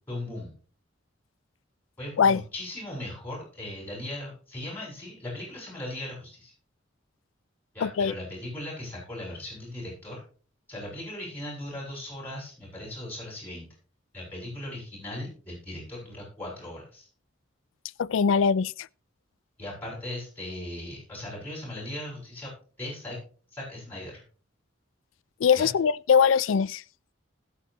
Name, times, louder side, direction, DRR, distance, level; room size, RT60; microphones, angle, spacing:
voice 1, 0.1-0.5 2.0-6.5 7.7-10.2 10.7-13.7 14.1-17.1 19.6-22.5 22.8-23.2 23.5-24.2 25.5-25.7, left 1 dB, 10° left, 7.5 m, -38 dB
voice 2, 7.8-8.1 18.0-18.9 25.4-26.8, left 6 dB, 80° left, 0.4 m, -22 dB
20.0 x 7.2 x 3.1 m
head